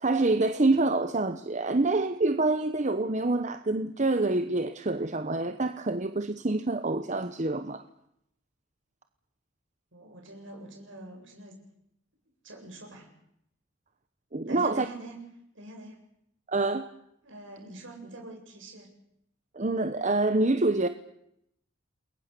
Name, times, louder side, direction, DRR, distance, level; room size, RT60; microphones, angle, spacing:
voice 1, 0.0-7.8 14.3-14.8 16.5-16.9 19.5-20.9, right 2 dB, 35° right, 9 dB, 1.0 m, -26 dB
voice 2, 9.9-11.6 12.4-13.1 14.5-15.2 15.5-16.0 17.2-18.9, right 1 dB, 70° right, 2 dB, 8.0 m, -44 dB
28.5 x 22.0 x 6.9 m, 0.76 s
head